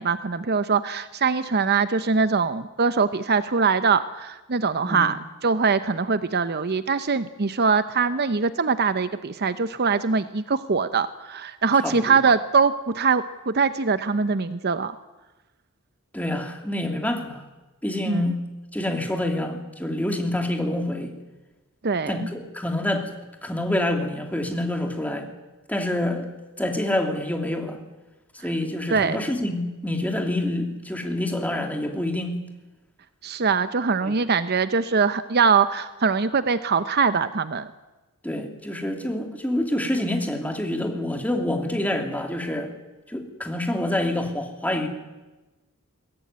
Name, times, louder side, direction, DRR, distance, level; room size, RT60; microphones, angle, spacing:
voice 1, 0.0-5.2 5.4-14.9 18.1-18.3 21.8-22.3 28.9-29.2 33.2-37.7, right 5 dB, 50° right, 12 dB, 0.7 m, -22 dB
voice 2, 11.8-12.2 16.1-17.4 17.8-18.4 18.7-21.1 22.1-23.1 23.4-25.3 25.7-26.3 26.6-27.8 28.4-32.4 34.0-34.1 38.2-42.7 43.1-44.9, left 1 dB, 5° left, 4 dB, 2.9 m, -27 dB
22.5 x 17.5 x 9.5 m, 1.1 s
head